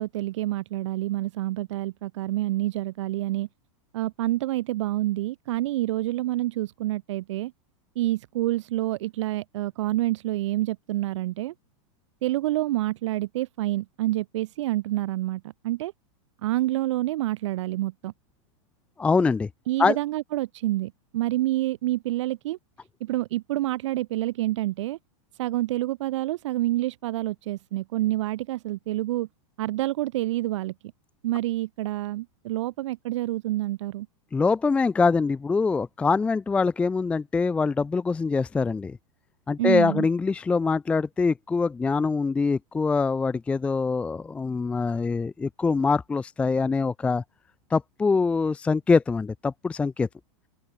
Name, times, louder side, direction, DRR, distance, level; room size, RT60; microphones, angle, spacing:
voice 1, 0.0-3.5 3.9-7.5 7.9-11.5 12.2-15.9 16.4-18.1 19.7-22.6 23.0-25.0 25.4-29.3 29.6-30.7 31.2-34.1 39.6-40.1, right 16 dB, 55° right, 1.2 m, -28 dB
voice 2, 19.0-19.5 19.8-20.0 34.3-39.0 39.5-47.2 47.7-50.1, left 4 dB, 5° left, 0.6 m, -24 dB
open air
supercardioid pair, 170°, 18 cm